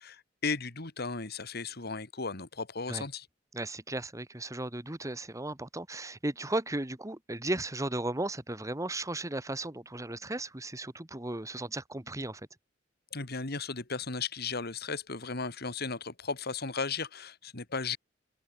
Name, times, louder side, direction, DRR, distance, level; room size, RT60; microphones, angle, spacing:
voice 1, 0.0-3.3 13.1-18.0, left 4 dB, 55° left, 2.3 m, -35 dB
voice 2, 3.5-12.4, right 2 dB, 15° right, 1.6 m, -35 dB
head